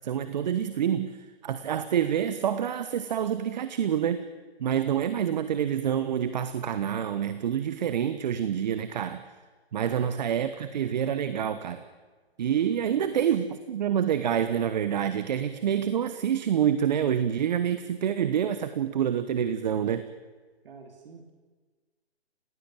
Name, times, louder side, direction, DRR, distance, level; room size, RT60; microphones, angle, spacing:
voice 1, 0.0-4.2 4.6-9.2 9.7-11.8 12.4-20.1, right 9 dB, 40° right, 11 dB, 1.2 m, -27 dB
voice 2, 12.6-13.3 20.6-21.3, right 4 dB, 55° right, 3 dB, 3.1 m, -48 dB
29.5 x 16.0 x 8.9 m, 1.4 s
hypercardioid pair, 155°, 33 cm